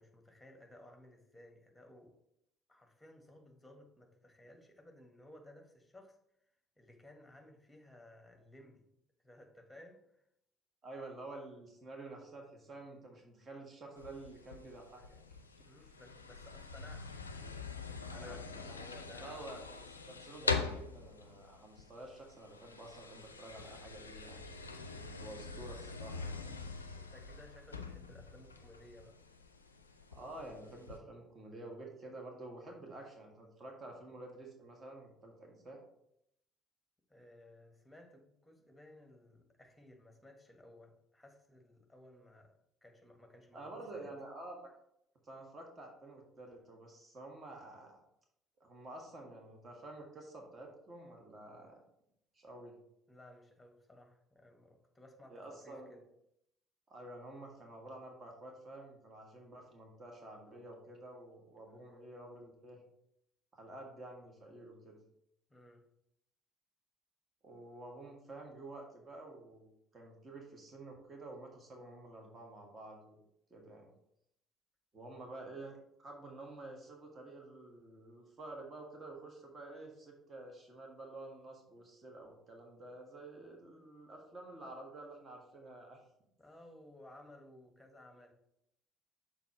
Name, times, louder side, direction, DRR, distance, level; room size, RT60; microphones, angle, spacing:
voice 1, 0.0-2.2 2.7-6.2 6.8-8.9 9.2-10.3 15.6-19.4 27.0-29.2 37.1-44.1 53.1-56.0 65.5-65.9 86.4-88.3, left 1 dB, 10° left, 4 dB, 1.4 m, -58 dB
voice 2, 10.8-15.2 15.6-15.9 18.1-18.8 19.2-19.8 20.1-24.5 25.2-26.5 30.1-35.8 43.5-44.7 45.2-48.0 48.6-51.8 52.3-52.7 55.3-56.0 56.9-62.8 63.5-65.0 67.4-73.2 73.5-73.9 74.9-86.0, right 2 dB, 35° right, 1 dB, 1.6 m, -50 dB
sound 1, 14.0-31.0, left 4 dB, 85° left, 0.4 m, -44 dB
7.0 x 3.9 x 4.3 m, 0.76 s
figure-of-eight pair, 50°, 0 cm